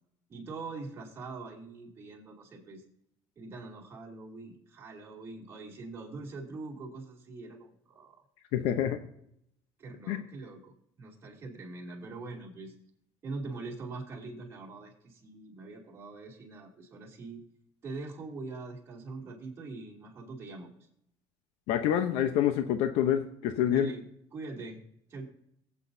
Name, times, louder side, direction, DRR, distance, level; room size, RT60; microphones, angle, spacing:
voice 1, 0.3-2.8 3.4-8.2 9.8-12.7 13.2-17.4 17.8-20.7 23.7-24.0 24.3-24.8 25.1-25.3, right 3 dB, 25° right, -2 dB, 2.9 m, -43 dB
voice 2, 8.5-9.0 10.1-10.2 21.7-23.9, left 10 dB, 85° left, 8 dB, 0.8 m, -27 dB
22.0 x 8.2 x 2.7 m, 0.74 s
cardioid pair, 160°, 10 cm